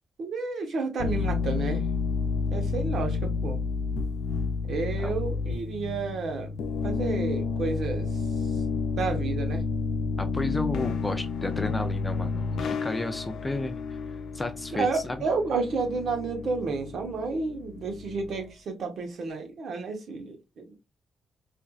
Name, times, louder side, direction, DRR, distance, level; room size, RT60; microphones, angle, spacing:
voice 1, 0.2-1.9 2.5-3.6 4.7-6.5 6.8-8.1 9.0-9.7 14.7-20.8, right 4 dB, 55° right, 0.9 m, -31 dB
sound 1, 1.0-18.4, left 4 dB, 80° left, 0.4 m, -30 dB
voice 2, 10.2-13.8 14.3-15.2, left 2 dB, 15° left, 0.4 m, -32 dB
4.3 x 2.5 x 2.3 m
wide cardioid pair, 175°, 0 cm